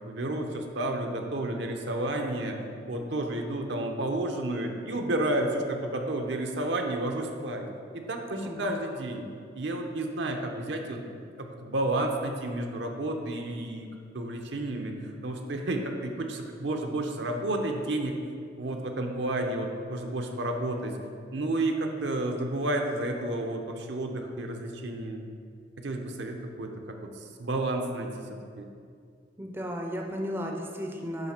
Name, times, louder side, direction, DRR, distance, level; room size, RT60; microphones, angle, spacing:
voice 1, 0.0-2.6 2.9-7.6 7.9-9.2 9.6-13.9 14.1-14.9 15.2-18.2 18.6-20.9 21.3-25.2 25.8-26.7 27.0-27.1 27.4-28.6, right 1 dB, 70° right, 3 dB, 0.8 m, -31 dB
voice 2, 29.4-31.3, equal, 10° right, 1 dB, 0.6 m, -34 dB
9.0 x 3.3 x 5.9 m, 2.3 s
head